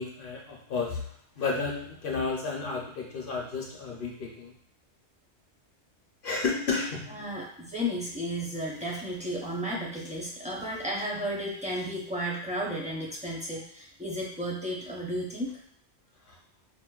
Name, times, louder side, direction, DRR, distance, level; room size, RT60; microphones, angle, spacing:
voice 1, 0.0-4.6 6.2-7.2 16.3-16.4, left 4 dB, 55° left, -1 dB, 0.7 m, -32 dB
voice 2, 7.1-15.6, equal, 10° right, -5 dB, 0.5 m, -33 dB
4.9 x 2.0 x 2.3 m, 0.63 s
omnidirectional pair, 1.2 m